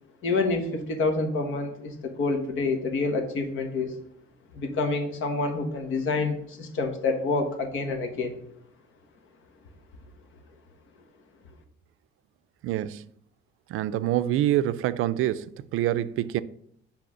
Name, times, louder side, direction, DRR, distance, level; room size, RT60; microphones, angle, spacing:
voice 1, 0.2-3.9 4.5-8.3, left 3 dB, 70° left, 1.4 m, -27 dB
voice 2, 12.6-13.0 13.7-16.4, right 13 dB, 85° right, 0.4 m, -26 dB
7.8 x 3.4 x 6.3 m
cardioid pair, 135°, 21 cm